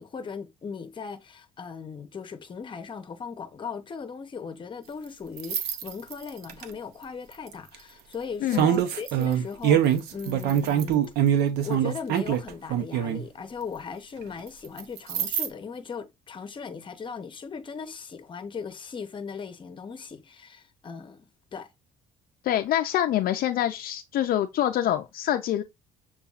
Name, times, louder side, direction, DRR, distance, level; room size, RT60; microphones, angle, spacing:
voice 1, 0.0-11.0 11.6-21.7, left 5 dB, 30° left, 0.7 m, -38 dB
sound 1, 5.4-6.6 7.5-7.7 8.5-13.2 14.8-15.5, right 9 dB, 85° right, 0.6 m, -24 dB
voice 2, 22.4-25.6, left 12 dB, 60° left, 0.4 m, -25 dB
6.8 x 2.3 x 2.4 m
cardioid pair, 110°, 17 cm